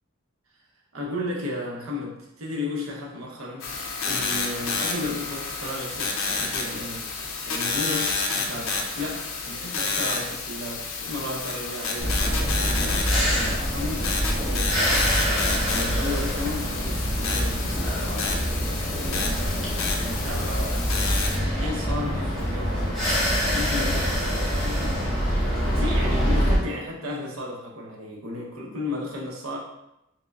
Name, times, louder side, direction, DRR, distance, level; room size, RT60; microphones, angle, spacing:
voice 1, 0.9-3.7 4.0-7.1 7.5-15.3 15.6-19.4 19.9-23.0 23.4-25.2 25.7-29.6, left 2 dB, 85° right, -2 dB, 0.8 m, -34 dB
sound 1, 3.6-21.4, left 4 dB, 75° left, 0.5 m, -30 dB
sound 2, 12.0-26.6, equal, ahead, 0.9 m, -25 dB
4.7 x 2.1 x 2.3 m, 0.86 s
head